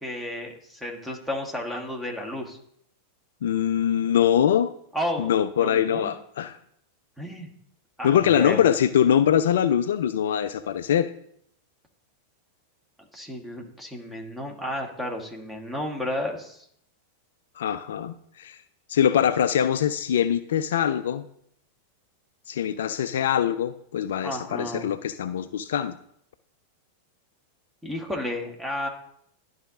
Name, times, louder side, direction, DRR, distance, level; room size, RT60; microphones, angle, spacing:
voice 1, 0.0-2.6 4.9-5.3 5.6-6.1 7.2-7.5 8.0-8.6 13.1-16.6 24.2-24.9 27.8-28.9, left 1 dB, 5° right, 1 dB, 1.4 m, -32 dB
voice 2, 3.4-4.7 5.2-6.6 8.0-11.1 17.6-18.6 18.9-21.2 22.5-26.0, left 9 dB, 60° left, 12 dB, 0.3 m, -23 dB
12.0 x 4.0 x 3.7 m, 0.69 s
figure-of-eight pair, 90°, 0 cm